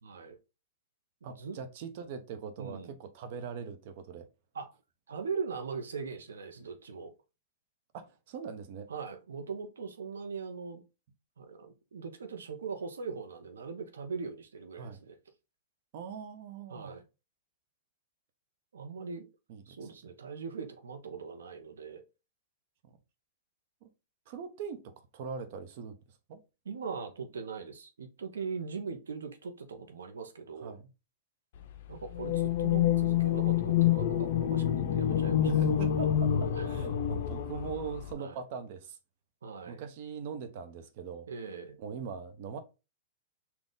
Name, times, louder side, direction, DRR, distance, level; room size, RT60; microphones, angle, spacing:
voice 1, 0.0-0.4 1.2-1.6 2.6-3.0 4.5-4.7 5.1-7.1 8.9-10.8 11.4-15.2 16.7-17.0 18.7-19.3 19.7-22.0 26.7-30.7 31.9-35.5 36.6-36.8 38.2-38.4 39.4-39.8 41.3-41.8, right 5 dB, 85° right, 0.7 m, -40 dB
voice 2, 1.2-4.3 7.9-8.9 14.8-15.0 15.9-16.9 19.5-19.9 22.8-23.0 23.8-23.9 24.3-26.4 30.6-30.9 35.3-39.0 39.7-41.3 41.8-42.6, right 6 dB, 55° right, 0.8 m, -41 dB
sound 1, 32.1-38.1, left 10 dB, 60° left, 0.4 m, -27 dB
4.1 x 2.3 x 3.6 m
hypercardioid pair, 125°, 0 cm